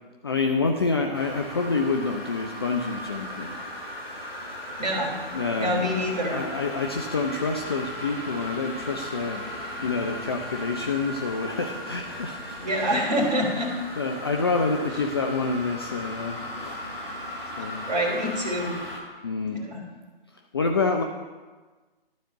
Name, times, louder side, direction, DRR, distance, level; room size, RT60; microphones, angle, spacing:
voice 1, 0.2-3.6 5.3-9.5 9.8-13.1 14.0-16.8 17.6-17.8 19.2-19.6 20.5-21.0, left 4 dB, 25° left, 2 dB, 0.4 m, -28 dB
sound 1, 1.1-19.0, left 1 dB, 80° left, 2.9 m, -37 dB
voice 2, 4.8-5.1 5.6-6.4 12.6-13.7 17.9-18.7 19.5-19.9, equal, 45° right, 1 dB, 2.8 m, -26 dB
12.0 x 4.3 x 7.9 m, 1.3 s
figure-of-eight pair, 135°, 29 cm